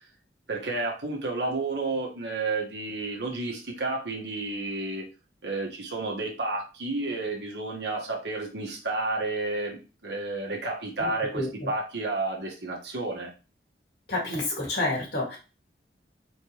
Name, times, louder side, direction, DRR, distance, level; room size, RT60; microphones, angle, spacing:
voice 1, 0.5-5.1 5.4-13.3, right 2 dB, 75° right, 0 dB, 1.3 m, -31 dB
voice 2, 11.3-11.7 14.1-15.4, left 2 dB, 65° left, -3 dB, 2.2 m, -29 dB
4.3 x 3.3 x 3.0 m, 0.32 s
head